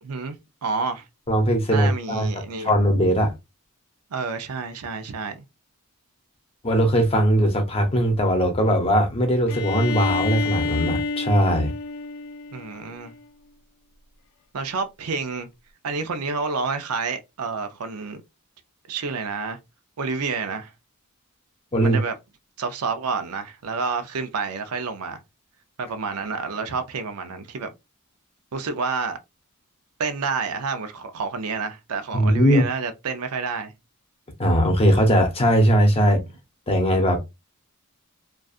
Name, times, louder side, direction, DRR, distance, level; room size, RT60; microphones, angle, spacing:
voice 1, 0.0-0.4 0.6-1.0 1.7-2.8 4.1-5.4 12.5-13.1 14.5-15.5 15.8-18.2 18.9-19.6 20.0-20.7 21.8-22.1 22.6-25.2 25.8-27.7 28.5-29.2 30.0-33.7 36.0-36.2, right 4 dB, 85° right, 0.5 m, -29 dB
voice 2, 1.3-2.3 2.6-3.3 6.6-11.7 21.7-22.0 32.1-32.6 34.4-36.2 36.7-37.2, equal, 25° left, 0.7 m, -19 dB
Bowed string instrument, 9.5-13.2, left 4 dB, 75° left, 0.3 m, -29 dB
2.5 x 2.3 x 2.4 m
head